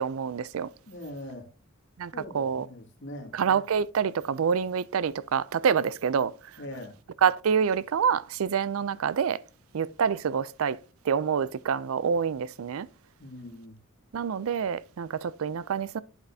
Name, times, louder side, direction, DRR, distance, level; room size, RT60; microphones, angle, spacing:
voice 1, 0.0-0.7 2.0-2.7 3.3-6.6 7.2-9.4 9.7-10.8 11.0-12.9 14.1-16.0, right 7 dB, 75° right, 0.4 m, -27 dB
voice 2, 0.9-1.4 2.1-3.3 6.6-7.0 13.2-13.8, left 1 dB, 60° left, 2.1 m, -41 dB
8.2 x 8.1 x 2.7 m
head